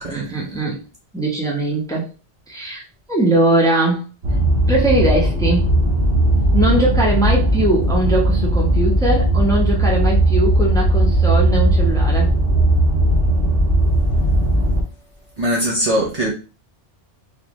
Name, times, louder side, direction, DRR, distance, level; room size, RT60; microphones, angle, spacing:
voice 1, 0.1-0.8 1.1-2.0 2.5-2.8 3.1-4.0 4.7-5.7 6.5-12.3, right 1 dB, 5° left, -4 dB, 1.0 m, -20 dB
sound 1, 4.2-14.8, right 1 dB, 60° right, 1.4 m, -17 dB
voice 2, 15.4-16.3, equal, 35° right, -4 dB, 1.1 m, -20 dB
4.0 x 2.7 x 3.1 m, 0.32 s
omnidirectional pair, 1.2 m